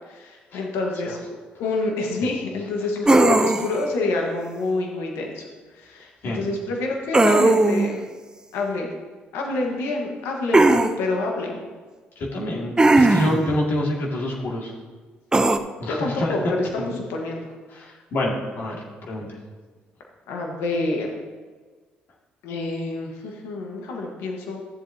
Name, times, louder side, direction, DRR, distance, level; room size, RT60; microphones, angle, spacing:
voice 1, 0.1-1.2 1.6-5.5 5.7-8.0 8.5-8.9 9.3-11.7 15.8-17.5 20.3-21.1 22.4-24.6, left 2 dB, 80° left, 1 dB, 1.4 m, -27 dB
sound 1, 3.1-3.8 7.1-7.9 10.5-10.9 12.8-13.4 15.3-15.6, right 2 dB, 20° right, 0.6 m, -17 dB
voice 2, 12.2-14.7 15.8-16.3 16.8-16.9 17.7-19.3, left 1 dB, 65° left, -2 dB, 2.2 m, -27 dB
13.0 x 7.4 x 2.8 m, 1.4 s
supercardioid pair, 60°, 4 cm